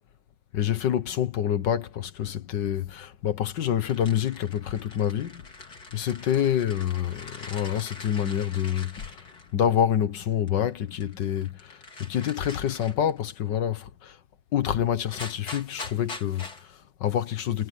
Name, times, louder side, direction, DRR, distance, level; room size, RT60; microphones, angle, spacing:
voice 1, 0.5-5.5 5.9-9.3 9.5-14.2 14.5-17.7, left 10 dB, 70° left, 1.8 m, -27 dB
sound 1, 3.8-9.8 10.5-13.2 14.6-14.7 15.0-16.7, left 3 dB, 55° left, 4.2 m, -43 dB
omnidirectional pair, 2.0 m